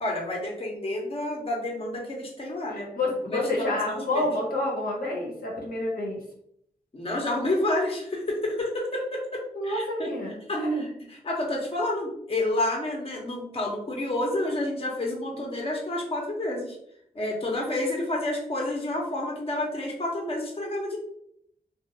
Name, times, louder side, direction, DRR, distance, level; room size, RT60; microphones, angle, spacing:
voice 1, 0.0-2.9 3.3-4.3 6.9-10.1 10.5-16.8 17.1-21.0, left 1 dB, 35° left, -1 dB, 0.9 m, -29 dB
voice 2, 2.7-6.2 9.5-10.9 15.4-15.5, left 1 dB, 65° left, -3 dB, 0.8 m, -29 dB
2.5 x 2.4 x 2.8 m, 0.71 s
cardioid pair, 45°, 16 cm